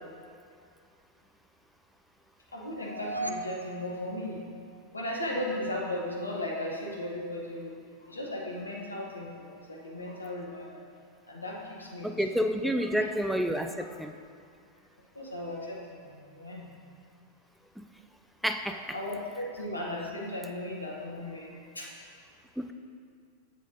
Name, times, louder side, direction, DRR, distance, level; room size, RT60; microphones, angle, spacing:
voice 1, 2.5-4.5 4.9-7.7 8.0-10.8 11.3-12.1 15.1-16.7 18.7-21.9, left 1 dB, 80° left, -2 dB, 0.9 m, -36 dB
sound 1, 2.7-5.0, right 2 dB, 90° right, 0.4 m, -39 dB
voice 2, 12.0-14.1 17.8-17.9 18.4-18.8 22.6-22.7, equal, ahead, 6 dB, 0.3 m, -29 dB
7.0 x 6.5 x 2.7 m, 2.3 s
figure-of-eight pair, 90°, 0 cm